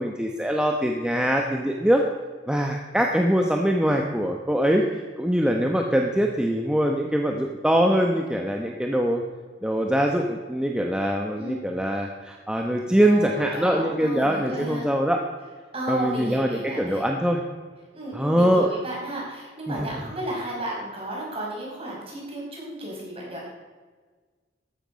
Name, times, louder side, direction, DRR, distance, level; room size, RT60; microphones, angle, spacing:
voice 1, 0.0-2.0 2.5-9.2 9.6-15.2 15.9-17.4 18.1-18.7 19.7-19.9, equal, 5° right, 2 dB, 0.9 m, -23 dB
voice 2, 12.8-14.9 15.7-17.1 17.9-23.5, right 1 dB, 30° right, -3 dB, 5.1 m, -33 dB
14.0 x 12.5 x 5.2 m, 1.4 s
head